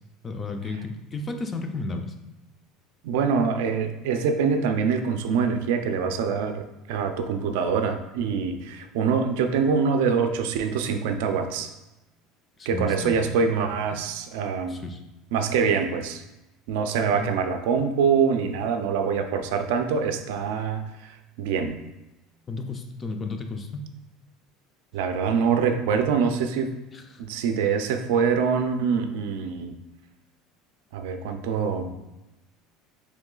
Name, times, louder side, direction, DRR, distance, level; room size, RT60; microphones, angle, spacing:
voice 1, 0.2-2.1 12.6-13.4 14.7-15.0 17.2-17.3 22.5-23.7 26.9-27.2, left 3 dB, 15° left, 5 dB, 0.3 m, -33 dB
voice 2, 3.0-11.7 12.7-14.8 15.3-16.2 16.7-21.8 24.9-26.7 27.2-29.8 30.9-32.0, right 6 dB, 80° right, 6 dB, 0.4 m, -25 dB
3.1 x 3.0 x 3.7 m, 0.98 s
cardioid pair, 170°, 0 cm